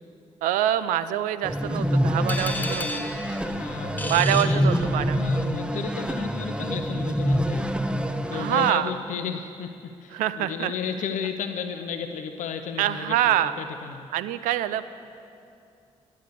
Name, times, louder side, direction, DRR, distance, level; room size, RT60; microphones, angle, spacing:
voice 1, 0.4-3.1 4.1-5.2 8.3-8.9 10.1-10.7 12.8-13.6 14.1-14.8, right 12 dB, 85° right, 14 dB, 0.4 m, -25 dB
sound 1, 1.4-8.7, equal, 5° right, 0.8 m, -26 dB
sound 2, 2.3-5.3, left 1 dB, 15° left, 1.4 m, -34 dB
voice 2, 3.4-4.7 5.1-7.7 8.3-14.1, left 7 dB, 70° left, 7 dB, 0.6 m, -34 dB
11.0 x 9.5 x 6.7 m, 2.5 s
hypercardioid pair, 45°, 13 cm